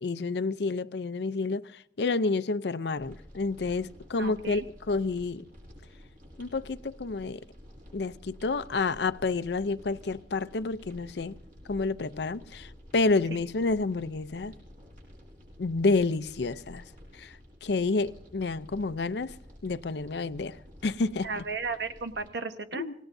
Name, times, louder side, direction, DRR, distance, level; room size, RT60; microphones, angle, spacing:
voice 1, 0.0-5.4 6.4-7.4 7.9-11.4 11.7-14.5 15.6-19.3 19.6-21.4 22.7-22.9, left 3 dB, 65° left, 0.6 m, -29 dB
sound 1, 3.0-22.3, equal, 50° right, 7.6 m, -51 dB
voice 2, 4.2-4.6 21.2-22.8, right 4 dB, 70° right, 1.3 m, -34 dB
27.0 x 18.0 x 2.7 m
head